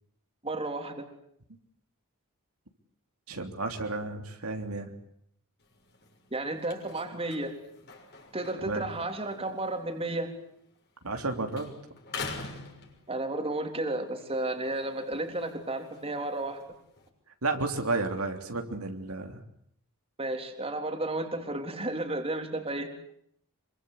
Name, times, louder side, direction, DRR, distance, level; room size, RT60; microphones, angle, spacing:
voice 1, 0.4-1.0 6.3-7.5 8.3-10.3 13.1-16.6 20.2-22.9, right 2 dB, 25° right, 5 dB, 3.7 m, -32 dB
voice 2, 3.3-4.9 8.6-8.8 11.0-11.7 17.4-19.4, right 3 dB, 75° right, 4 dB, 3.4 m, -32 dB
sound 1, 5.6-11.2 11.5-13.5 14.0-17.1, left 4 dB, 50° left, 6.6 m, -46 dB
26.0 x 24.5 x 8.3 m, 0.71 s
head